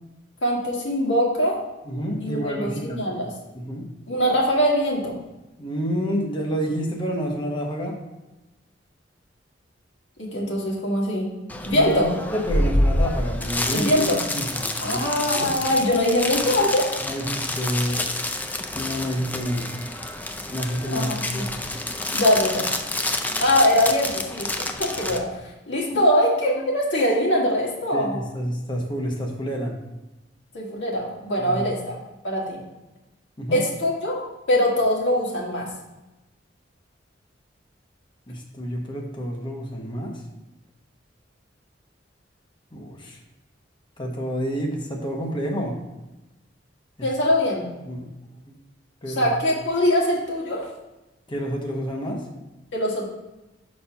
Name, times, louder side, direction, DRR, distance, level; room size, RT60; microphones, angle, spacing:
voice 1, 0.4-1.6 2.2-3.3 4.1-5.1 10.2-11.3 11.7-12.1 13.7-14.2 14.8-16.9 20.9-21.4 22.1-22.7 23.4-25.3 25.7-28.2 30.5-31.9 32.2-32.6 33.5-35.7 47.0-47.7 49.1-50.6 52.7-53.1, left 1 dB, 75° left, -3 dB, 1.8 m, -22 dB
voice 2, 1.9-3.1 3.5-3.9 5.6-8.0 11.7-13.9 14.3-14.6 14.9-15.0 17.0-18.1 18.7-19.7 20.5-21.5 25.9-26.0 27.9-29.7 31.4-31.6 33.4-33.6 38.3-40.2 42.7-43.2 44.0-45.7 47.9-48.1 48.5-48.6 49.0-49.3 51.3-52.2, equal, 25° left, 0 dB, 1.0 m, -28 dB
sound 1, 11.5-25.2, left 1 dB, 10° left, 0.4 m, -28 dB
5.0 x 4.3 x 5.7 m, 1.0 s
head